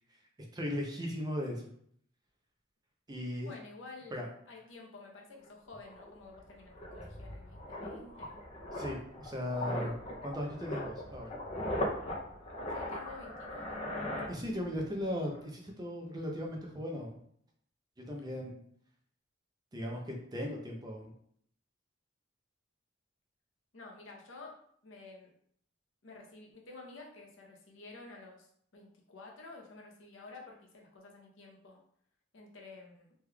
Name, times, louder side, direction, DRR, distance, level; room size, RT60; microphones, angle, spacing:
voice 1, 0.5-1.6 3.1-3.5 4.1-4.3 8.7-9.9 10.2-11.3 14.3-17.2 18.1-18.6 19.7-21.1, equal, 20° right, 0 dB, 0.5 m, -37 dB
voice 2, 3.4-8.4 12.7-13.8 23.7-24.6 24.8-25.3 26.0-31.8 32.3-33.1, left 3 dB, 70° left, 0 dB, 0.8 m, -51 dB
sound 1, 5.5-5.6 5.9-14.9 15.2-15.4, left 1 dB, 30° left, 0.5 m, -39 dB
3.4 x 3.2 x 2.3 m, 0.64 s
head